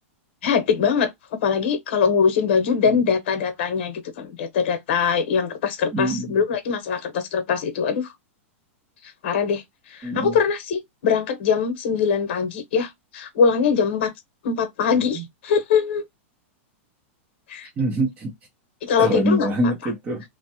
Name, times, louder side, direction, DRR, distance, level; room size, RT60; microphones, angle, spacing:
voice 1, 0.4-8.1 9.2-14.1 14.4-16.0 17.5-17.7 18.8-19.7, left 6 dB, 55° left, 0.9 m, -22 dB
voice 2, 5.9-6.3 10.0-10.3 15.1-15.2 17.8-18.3 19.0-20.2, right 1 dB, 20° right, 0.7 m, -24 dB
3.2 x 2.0 x 2.7 m
supercardioid pair, 170°, 7 cm